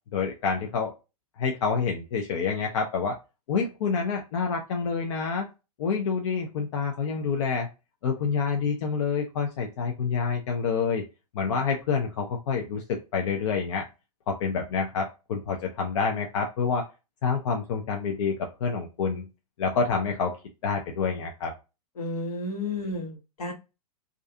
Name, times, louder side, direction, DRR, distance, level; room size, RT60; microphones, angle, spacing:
voice 1, 0.1-0.9 1.4-3.2 3.5-5.5 5.8-7.7 8.0-11.0 11.3-13.9 14.3-16.8 17.2-18.4 18.6-19.3 19.6-20.3 20.6-21.5, left 5 dB, 55° left, 2 dB, 0.5 m, -27 dB
voice 2, 22.0-23.5, left 2 dB, 75° left, 2 dB, 1.1 m, -32 dB
2.4 x 2.3 x 2.5 m, 0.28 s
hypercardioid pair, 115°, 20 cm